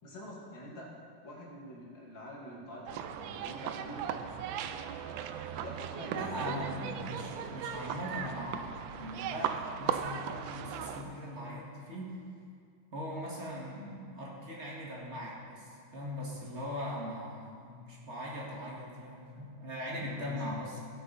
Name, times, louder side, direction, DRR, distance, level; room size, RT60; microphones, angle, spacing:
voice 1, 0.0-0.9 1.2-4.6 5.5-6.9 19.8-20.6, equal, 65° left, -4 dB, 2.8 m, -46 dB
sound 1, 2.9-11.0, right 8 dB, 75° right, 1.3 m, -37 dB
voice 2, 6.1-12.2 12.9-20.8, equal, 35° right, -5 dB, 2.3 m, -40 dB
17.0 x 7.9 x 4.1 m, 2.2 s
omnidirectional pair, 2.2 m